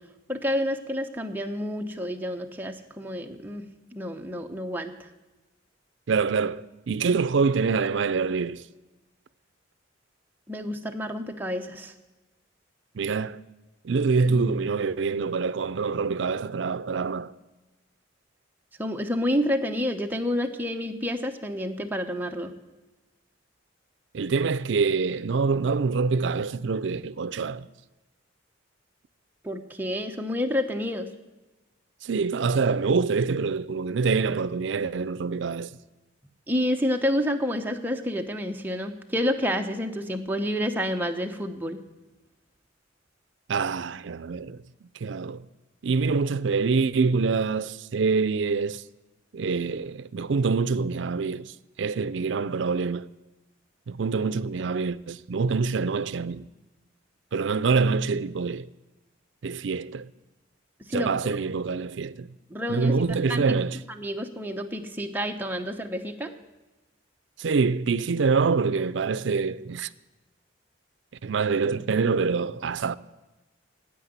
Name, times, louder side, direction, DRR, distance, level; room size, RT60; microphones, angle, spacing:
voice 1, 0.3-3.6 3.9-5.1 10.5-11.9 14.3-14.5 18.8-22.5 29.4-31.1 36.5-41.8 60.9-61.4 62.5-63.0 63.3-63.4 63.9-66.3, equal, 10° right, 0.9 m, -29 dB
voice 2, 6.1-8.6 12.9-13.4 13.8-17.3 24.1-27.7 32.0-35.7 43.5-44.6 45.0-45.4 45.8-48.8 49.3-51.5 51.8-53.1 53.9-56.4 57.3-58.7 59.4-60.1 60.9-62.3 62.7-63.8 67.4-69.9 71.2-73.0, right 4 dB, 70° right, 0.5 m, -25 dB
9.9 x 8.8 x 9.5 m
head